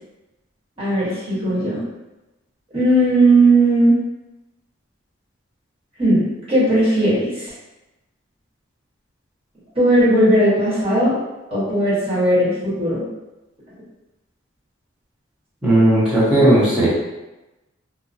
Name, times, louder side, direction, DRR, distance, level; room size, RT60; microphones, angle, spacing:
voice 1, 0.8-1.8 2.7-4.0 6.0-7.5 9.7-11.1 11.5-13.0, right 1 dB, 30° right, -11 dB, 1.3 m, -17 dB
voice 2, 15.6-16.9, right 1 dB, 5° right, -10 dB, 0.8 m, -15 dB
2.8 x 2.1 x 2.6 m, 1.0 s
head